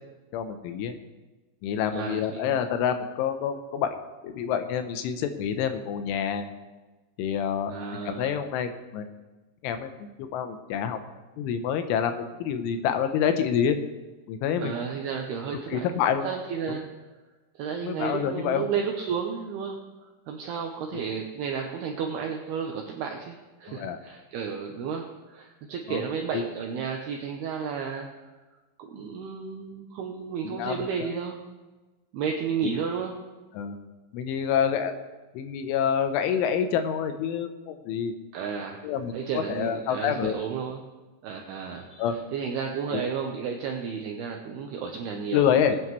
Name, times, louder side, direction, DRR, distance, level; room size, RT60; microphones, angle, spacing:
voice 1, 0.3-0.9 1.6-4.0 4.2-6.5 7.2-9.1 9.6-11.0 11.4-12.1 12.4-13.8 14.3-14.8 15.7-16.3 16.7-16.8 17.8-18.7 20.9-21.0 23.7-24.0 25.9-26.0 26.3-26.4 30.4-31.1 32.6-32.8 33.5-33.8 34.1-35.0 35.3-38.1 38.8-40.4 42.0-42.2 42.9-43.0 45.3-45.8, left 8 dB, 80° left, 8 dB, 3.1 m, -27 dB
voice 2, 1.9-2.5 7.7-8.3 14.6-15.9 16.2-16.9 17.6-19.8 20.3-28.3 28.8-31.4 32.1-33.2 38.3-38.8 39.1-40.8 41.2-42.1 42.3-45.7, right 6 dB, 80° right, 2 dB, 2.3 m, -32 dB
20.0 x 9.6 x 3.1 m, 1.2 s
omnidirectional pair, 5.7 m